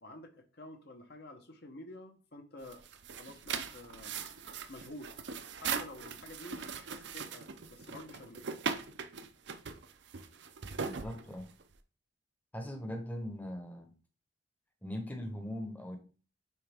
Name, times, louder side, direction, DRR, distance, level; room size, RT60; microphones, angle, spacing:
voice 1, 0.0-2.8 3.2-4.1 4.7-5.1 5.6-8.4, left 1 dB, 60° left, 5 dB, 1.0 m, -49 dB
sound 1, 2.6-11.7, right 6 dB, 65° right, 0.6 m, -40 dB
voice 2, 10.8-11.5 12.5-13.9 14.8-16.0, left 1 dB, 10° left, 5 dB, 0.9 m, -40 dB
9.0 x 3.4 x 3.5 m, 0.37 s
head